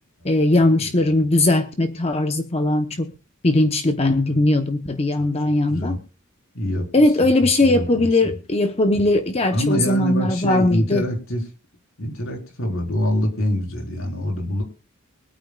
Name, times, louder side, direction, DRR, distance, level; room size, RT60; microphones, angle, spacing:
voice 1, 0.2-3.1 3.4-6.0 6.9-11.0, left 2 dB, 30° left, 0.9 m, -19 dB
voice 2, 5.7-6.0 6.5-6.9 7.2-8.1 9.5-11.4 12.0-14.6, equal, 70° left, 4.3 m, -25 dB
24.0 x 9.2 x 2.4 m
head